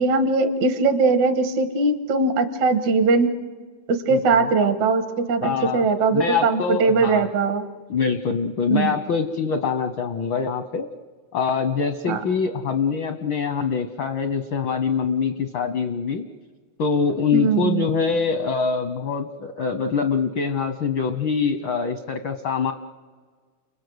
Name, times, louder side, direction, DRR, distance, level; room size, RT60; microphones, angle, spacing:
voice 1, 0.0-3.3 3.9-7.7 8.7-8.9 12.1-12.2 17.3-17.9, right 4 dB, 75° right, 9 dB, 2.8 m, -20 dB
voice 2, 4.1-4.5 5.4-5.9 6.1-7.3 7.9-10.9 11.3-16.3 16.8-22.7, left 5 dB, 75° left, 8 dB, 1.1 m, -24 dB
29.5 x 20.5 x 8.0 m, 1.5 s
omnidirectional pair, 3.4 m